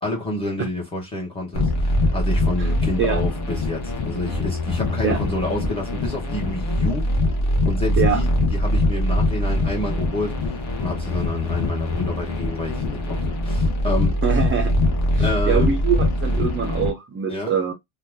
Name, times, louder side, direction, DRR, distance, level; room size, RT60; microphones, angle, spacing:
voice 1, 0.0-7.0 7.6-14.2 15.2-15.8 17.3-17.5, left 2 dB, 10° left, 1.2 m, -29 dB
sound 1, 1.5-16.9, left 1 dB, 35° left, 0.9 m, -22 dB
voice 2, 14.2-14.7 15.1-17.7, right 7 dB, 30° right, 0.4 m, -24 dB
2.8 x 2.2 x 3.4 m
cardioid pair, 165°, 47 cm